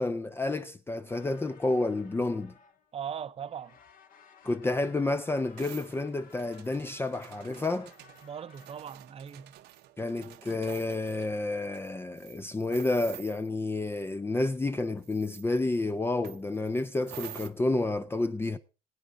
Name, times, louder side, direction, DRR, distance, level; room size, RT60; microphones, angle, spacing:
voice 1, 0.0-2.5 4.4-7.9 10.0-18.6, left 2 dB, 15° left, 0.5 m, -30 dB
sound 1, 1.1-3.2 3.4-8.8, left 7 dB, 55° left, 1.6 m, -57 dB
voice 2, 2.9-3.8 8.2-9.5, right 8 dB, 35° right, 0.7 m, -39 dB
sound 2, 5.6-11.3 11.7-11.9 12.2-13.5 15.0-15.4 16.2-17.5, right 14 dB, 80° right, 1.0 m, -49 dB
19.0 x 9.0 x 3.7 m
cardioid pair, 110°, 17 cm